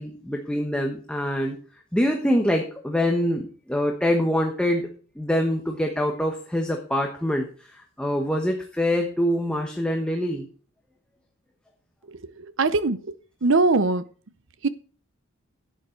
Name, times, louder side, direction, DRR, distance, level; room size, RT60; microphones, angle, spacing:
voice 1, 0.0-1.6 1.9-7.5 7.7-10.5, equal, 5° left, 2 dB, 1.2 m, -25 dB
voice 2, 12.1-13.1 13.4-14.0 14.6-14.7, right 3 dB, 65° right, 14 dB, 0.8 m, -22 dB
11.0 x 8.4 x 4.5 m, 0.42 s
head